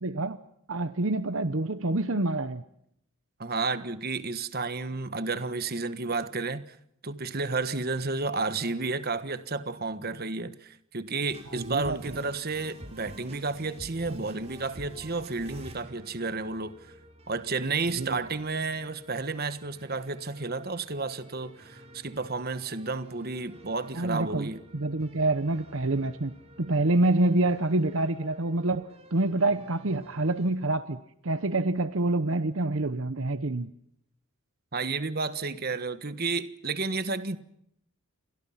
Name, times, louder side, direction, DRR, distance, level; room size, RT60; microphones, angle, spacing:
voice 1, 0.0-0.4 0.7-2.6 11.5-12.2 18.0-18.2 23.9-26.3 26.6-31.0 31.2-33.7, right 2 dB, 60° right, 1.0 m, -27 dB
voice 2, 3.4-6.8 7.0-16.7 17.3-24.6 34.7-37.4, right 3 dB, 45° right, 1.4 m, -31 dB
sound 1, 11.2-30.5, right 1 dB, 30° right, 5.1 m, -50 dB
30.0 x 23.5 x 5.8 m
head